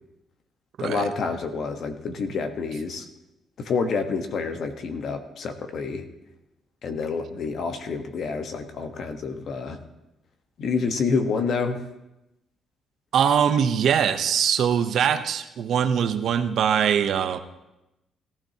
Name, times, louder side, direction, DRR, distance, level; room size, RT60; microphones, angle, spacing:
voice 1, 0.8-3.1 3.6-6.1 6.8-9.8 10.6-11.8, left 4 dB, 65° left, 6 dB, 1.3 m, -28 dB
voice 2, 13.1-17.4, right 8 dB, 70° right, 9 dB, 0.8 m, -22 dB
17.5 x 12.0 x 2.9 m, 0.92 s
cardioid pair, 90°, 0 cm